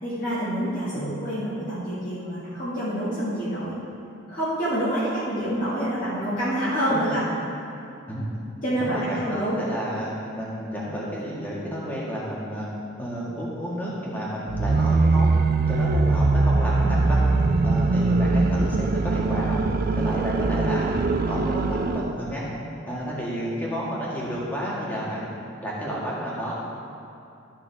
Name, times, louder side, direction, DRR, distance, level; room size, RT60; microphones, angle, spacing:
voice 1, 0.0-3.8 4.3-7.2 8.6-9.6, right 1 dB, 40° left, -11 dB, 2.1 m, -27 dB
voice 2, 6.9-7.2 8.1-8.4 8.8-12.7 13.0-15.3 15.7-17.3 17.6-19.6 20.0-22.5 22.8-25.3 25.6-26.5, equal, 10° left, -6 dB, 1.8 m, -31 dB
sound 1, 14.5-22.2, right 3 dB, 45° right, 0.3 m, -22 dB
13.5 x 7.4 x 3.5 m, 2.6 s
head